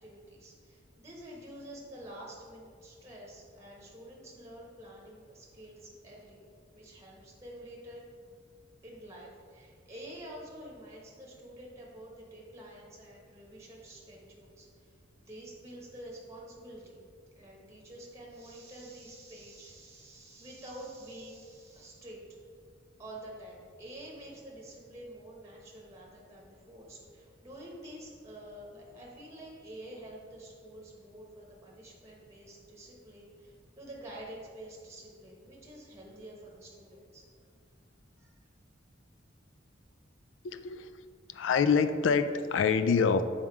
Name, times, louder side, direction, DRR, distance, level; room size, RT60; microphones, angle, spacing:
voice 1, 0.0-6.4 6.7-8.0 8.8-14.9 15.2-17.1 17.3-22.2 23.0-37.3 38.2-38.3, right 1 dB, 15° right, -2 dB, 1.1 m, -48 dB
voice 2, 40.4-40.9 41.3-43.2, left 5 dB, 80° left, 11 dB, 0.4 m, -26 dB
7.2 x 3.6 x 4.7 m, 2.1 s
head